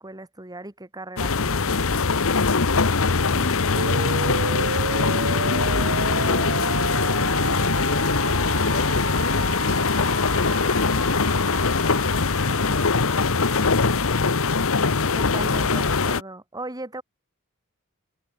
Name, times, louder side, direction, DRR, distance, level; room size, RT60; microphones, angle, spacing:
voice 1, 0.0-2.0 15.1-17.0, right 2 dB, 20° right, 3.0 m, -37 dB
sound 1, 1.2-16.2, left 4 dB, 65° left, 1.2 m, -22 dB
voice 2, 3.3-4.5 4.9-6.7 7.8-12.1 12.4-14.5, left 2 dB, 50° left, 1.9 m, -36 dB
sound 2, 3.8-13.8, right 5 dB, 55° right, 1.1 m, -33 dB
head